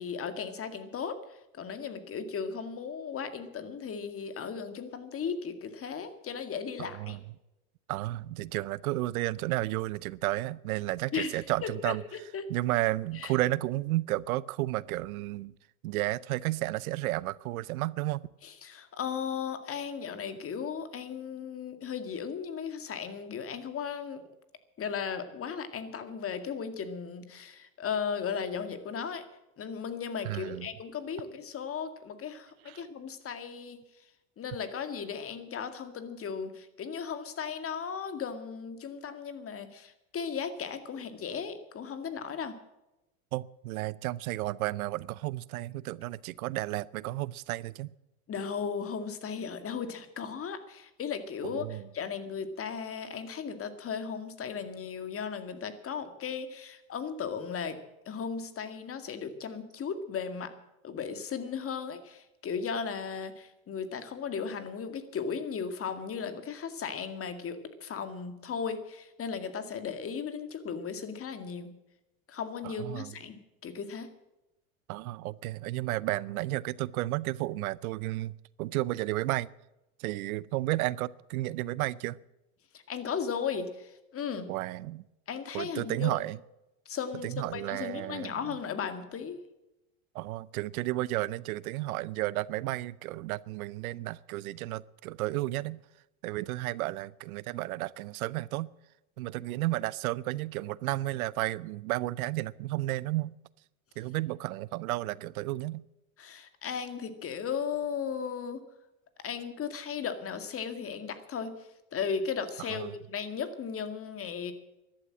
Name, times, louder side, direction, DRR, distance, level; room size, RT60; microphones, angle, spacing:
voice 1, 0.0-7.2 11.1-12.5 13.1-13.3 18.4-24.2 24.8-29.2 29.6-33.8 34.4-42.6 48.3-57.8 58.1-60.5 60.8-71.7 72.3-74.1 82.7-84.5 85.3-86.2 86.9-89.4 106.2-108.6 109.2-114.5, left 6 dB, 30° left, 10 dB, 2.1 m, -36 dB
voice 2, 6.8-7.2 7.9-12.0 12.5-15.5 15.8-18.3 30.2-30.7 32.7-32.8 43.3-47.9 51.4-51.8 72.6-73.1 74.9-78.3 78.6-79.5 80.0-82.2 84.5-85.0 85.5-86.4 87.2-88.6 90.1-95.8 96.2-98.7 99.2-103.3 104.0-105.8 112.7-112.9, right 17 dB, 80° right, 21 dB, 0.7 m, -32 dB
14.0 x 11.5 x 7.5 m, 0.94 s
supercardioid pair, 105°, 42 cm